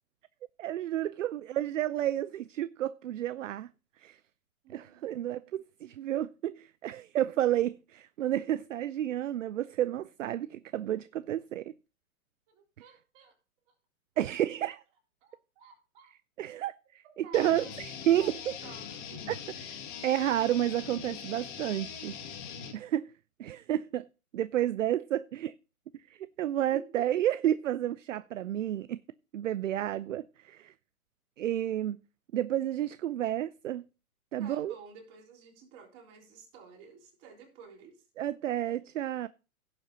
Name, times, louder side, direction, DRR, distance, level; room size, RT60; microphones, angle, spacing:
voice 1, 0.6-3.7 4.0-4.2 4.7-11.7 14.2-14.8 16.4-16.7 17.2-18.5 19.3-19.4 19.6-19.7 20.0-22.2 22.7-23.1 23.4-24.1 24.3-25.5 26.2-29.0 29.3-30.7 31.4-32.0 32.3-33.8 34.3-34.7 38.2-39.3, right 12 dB, 60° right, 0.5 m, -31 dB
voice 2, 4.6-5.2 12.5-13.4 14.1-14.3 15.2-16.1 17.0-19.3 26.7-27.1 28.1-28.2 34.4-38.0, right 5 dB, 30° right, 3.9 m, -52 dB
sound 1, 17.3-22.7, left 7 dB, 35° left, 2.2 m, -42 dB
16.5 x 7.4 x 2.8 m
figure-of-eight pair, 120°, 44 cm